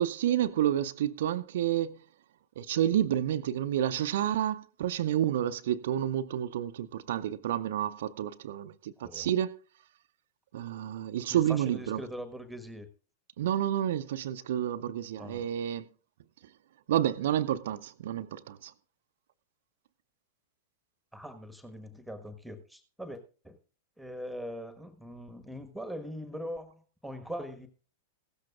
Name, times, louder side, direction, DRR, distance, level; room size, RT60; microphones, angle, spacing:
voice 1, 0.0-2.0 2.6-9.6 10.5-12.0 13.4-15.9 16.9-18.7, right 11 dB, 60° right, 0.5 m, -29 dB
voice 2, 11.3-12.9 15.2-15.4 21.1-23.6 24.0-27.7, equal, ahead, 1.3 m, -41 dB
16.0 x 13.5 x 2.4 m
figure-of-eight pair, 95°, 0 cm